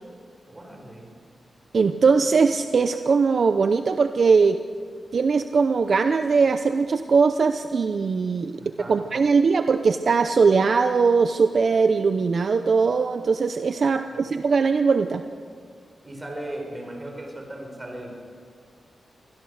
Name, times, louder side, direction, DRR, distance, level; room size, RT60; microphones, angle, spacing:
voice 1, 0.5-1.1 8.6-9.0 14.1-14.2 16.0-18.1, right 1 dB, 20° right, 1 dB, 5.0 m, -37 dB
voice 2, 1.7-4.6 5.1-15.2, right 5 dB, 55° right, 8 dB, 0.6 m, -20 dB
24.5 x 16.5 x 6.5 m, 2.1 s
wide cardioid pair, 135°, 0 cm